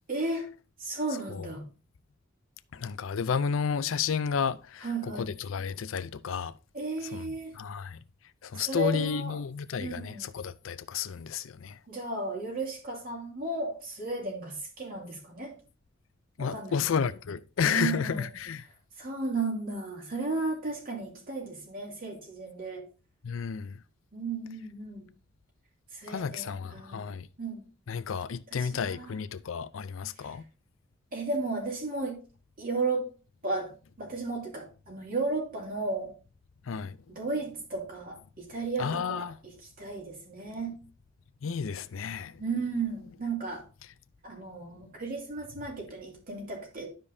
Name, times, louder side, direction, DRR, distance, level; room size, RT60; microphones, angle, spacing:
voice 1, 0.1-0.5 0.8-1.7 4.8-5.3 6.7-7.6 8.5-9.4 9.8-10.3 11.9-15.5 16.4-17.0 17.6-18.3 19.0-22.9 24.1-25.1 25.9-27.1 27.4-27.6 28.5-29.2 30.2-30.4 31.1-32.2 32.6-33.1 33.4-33.7 34.0-36.1 37.1-40.8 42.4-43.6 44.2-46.9, right 3 dB, 45° right, 2.7 m, -34 dB
voice 2, 2.7-4.9 5.2-6.5 7.1-7.2 7.6-8.0 8.4-11.8 16.4-18.7 23.2-23.8 26.1-27.3 27.9-30.4 36.7-37.0 38.8-39.4 41.4-42.4, left 6 dB, 70° left, 0.5 m, -31 dB
12.0 x 5.2 x 2.7 m
head